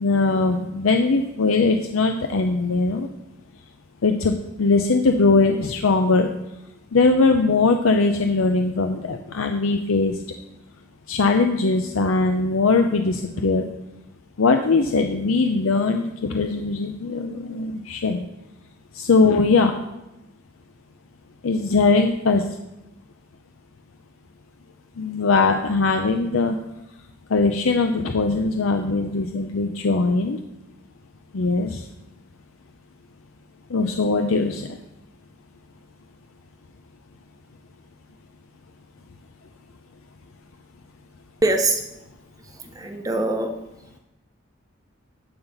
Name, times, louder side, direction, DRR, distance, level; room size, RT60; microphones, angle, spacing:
voice 1, 0.0-3.1 4.0-6.3 6.9-10.1 11.1-13.7 14.4-18.3 18.9-19.8 21.4-22.4 25.0-26.5 27.3-30.4 31.3-31.8 33.7-34.7, left 3 dB, 90° left, 6 dB, 0.6 m, -20 dB
voice 2, 41.4-41.8 42.6-43.5, right 2 dB, 15° right, 5 dB, 0.8 m, -23 dB
11.5 x 4.0 x 6.7 m, 0.93 s
head